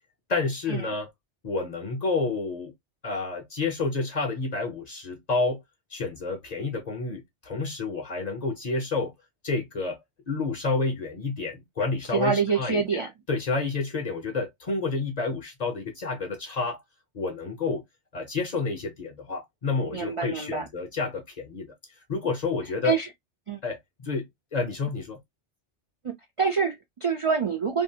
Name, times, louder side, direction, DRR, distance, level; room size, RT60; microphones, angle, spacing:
voice 1, 0.3-1.1 1.4-2.7 3.0-5.6 5.9-9.1 9.4-10.0 10.3-13.0 13.3-16.8 17.1-17.8 18.1-21.7 22.1-23.0 23.6-24.2 24.5-25.2, left 3 dB, 45° left, 0.6 m, -29 dB
voice 2, 12.1-13.1 19.9-20.7 22.8-23.1 23.5-23.6 26.0-27.8, right 5 dB, 50° right, 0.4 m, -26 dB
2.6 x 2.4 x 2.7 m
omnidirectional pair, 1.2 m